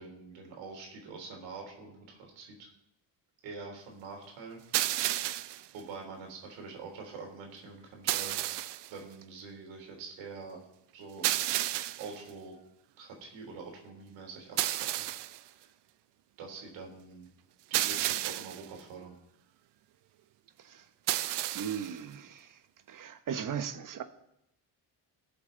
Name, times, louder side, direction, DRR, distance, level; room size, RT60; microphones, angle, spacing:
voice 1, 0.0-2.7 3.4-4.6 5.7-8.4 8.9-10.6 10.9-11.3 12.0-12.6 13.0-15.1 15.6-15.7 16.4-17.3 17.7-19.2, right 4 dB, 85° right, 3.5 m, -45 dB
sound 1, 4.7-5.7 8.1-8.9 11.2-12.2 14.6-15.4 17.7-18.7 21.1-21.9, right 15 dB, 65° right, 0.6 m, -31 dB
voice 2, 21.5-22.6 22.9-24.0, right 8 dB, 45° right, 1.2 m, -37 dB
20.5 x 7.2 x 4.0 m
cardioid pair, 100°, 45 cm